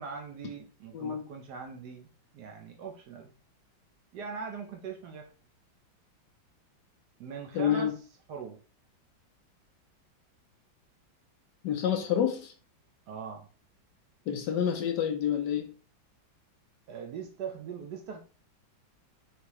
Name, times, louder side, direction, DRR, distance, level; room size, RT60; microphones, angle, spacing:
voice 1, 0.0-2.1 2.3-3.3 4.1-5.3 7.2-7.9 8.3-8.6 13.1-13.5 16.9-18.2, right 6 dB, 70° right, 4 dB, 1.0 m, -41 dB
voice 2, 0.9-1.3 7.5-7.9 11.6-12.5 14.3-15.7, left 9 dB, 70° left, 4 dB, 1.1 m, -28 dB
4.5 x 3.4 x 3.0 m, 0.37 s
omnidirectional pair, 2.2 m